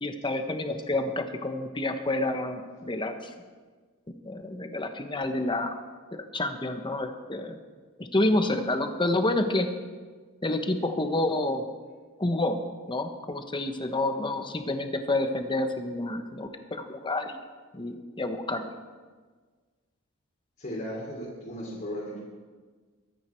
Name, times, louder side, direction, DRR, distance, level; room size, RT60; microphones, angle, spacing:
voice 1, 0.0-3.3 4.2-5.8 6.3-7.6 8.0-9.7 10.4-11.7 12.2-12.6 12.9-17.4 17.7-18.7, left 2 dB, 20° left, 7 dB, 1.1 m, -29 dB
voice 2, 20.6-22.2, equal, 40° left, -6 dB, 3.1 m, -36 dB
23.0 x 9.5 x 4.5 m, 1.5 s
head